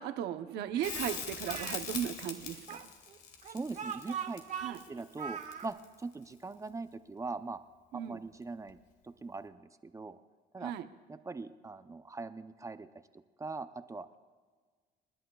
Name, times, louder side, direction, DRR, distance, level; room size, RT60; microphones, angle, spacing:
voice 1, 0.0-2.9 4.6-4.8 7.9-8.2 10.6-10.9, right 10 dB, 80° right, 9 dB, 0.8 m, -36 dB
Speech, 0.7-1.8 2.7-5.7, right 7 dB, 50° right, 1.1 m, -41 dB
Crackle, 0.8-6.0 8.7-8.8, left 7 dB, 85° left, 1.6 m, -42 dB
voice 2, 3.5-4.4 4.9-7.6 7.9-8.8 9.0-10.2 10.5-10.7 11.1-12.9 13.4-14.1, right 3 dB, 20° right, 10 dB, 0.5 m, -41 dB
28.5 x 11.0 x 2.3 m, 1.5 s
cardioid pair, 110°, 17 cm